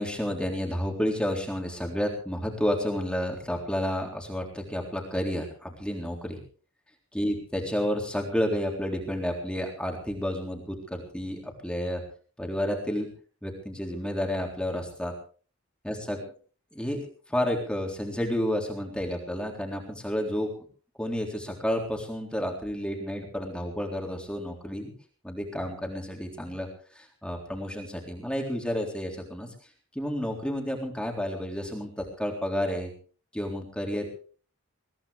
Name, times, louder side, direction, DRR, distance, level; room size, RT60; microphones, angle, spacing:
voice 1, 0.0-6.4 7.1-12.0 12.4-13.1 13.4-15.1 15.8-16.2 16.7-20.5 21.0-24.9 25.2-26.7 27.0-29.5 30.0-32.9 33.3-34.1, equal, 5° left, 1 dB, 3.8 m, -30 dB
23.0 x 16.5 x 3.5 m, 0.41 s
head